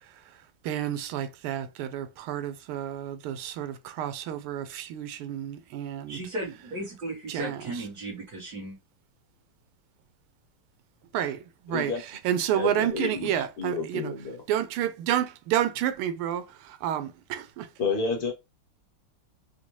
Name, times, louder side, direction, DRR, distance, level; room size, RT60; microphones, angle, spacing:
voice 1, 0.0-6.2 7.3-7.9 11.1-14.1 14.5-17.7, right 10 dB, 90° right, 1.5 m, -30 dB
voice 2, 6.1-8.8 13.0-13.1, right 1 dB, 55° right, 1.7 m, -35 dB
voice 3, 12.5-14.4 17.8-18.3, left 4 dB, 60° left, 1.1 m, -30 dB
4.2 x 2.2 x 3.0 m
omnidirectional pair, 2.3 m